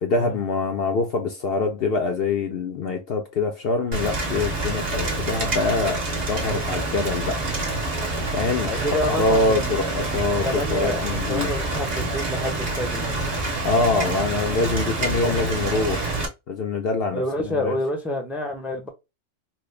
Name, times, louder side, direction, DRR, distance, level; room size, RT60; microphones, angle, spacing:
voice 1, 0.0-7.4 8.3-8.7 9.1-11.5 13.6-16.0 16.5-17.8, left 3 dB, 60° left, 0.7 m, -24 dB
Rain, 3.9-16.3, right 2 dB, 60° right, 1.5 m, -27 dB
voice 2, 8.7-13.1 17.1-18.9, left 1 dB, ahead, 0.6 m, -29 dB
4.2 x 2.1 x 3.2 m
omnidirectional pair, 1.3 m